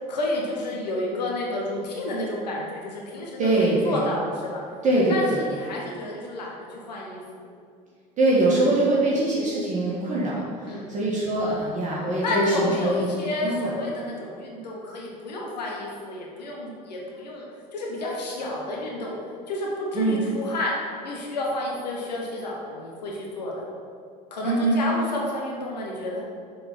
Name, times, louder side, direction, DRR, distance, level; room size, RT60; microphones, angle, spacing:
voice 1, 0.1-4.6 5.1-7.4 8.8-8.9 10.7-10.8 12.2-17.5 17.7-19.1 19.5-20.7 21.0-23.6 24.3-26.2, left 2 dB, 85° left, -3 dB, 1.3 m, -30 dB
voice 2, 3.4-4.1 4.8-5.4 8.2-13.1 13.4-13.6 19.9-20.2 24.4-24.8, right 2 dB, 35° right, -5 dB, 1.6 m, -23 dB
6.8 x 3.8 x 5.4 m, 2.2 s
hypercardioid pair, 70°, 21 cm